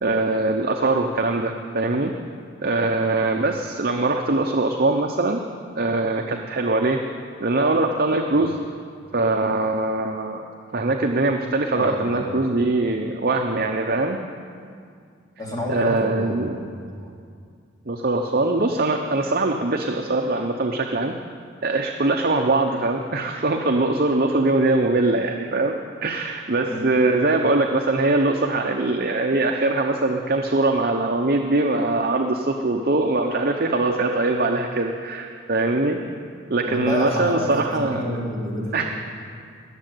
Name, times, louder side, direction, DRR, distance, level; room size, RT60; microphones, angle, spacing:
voice 1, 0.0-2.1 2.6-5.4 5.7-7.0 7.4-8.6 9.1-10.4 10.7-14.2 15.7-16.6 17.9-21.1 21.6-25.7 26.0-36.0 36.5-38.0 38.7-38.9, right 2 dB, 45° right, 3 dB, 0.8 m, -22 dB
voice 2, 11.7-12.5 15.4-16.7 17.0-17.1 26.7-26.8 36.7-38.9, left 1 dB, 20° left, -5 dB, 3.6 m, -29 dB
19.5 x 7.7 x 9.1 m, 2.3 s
head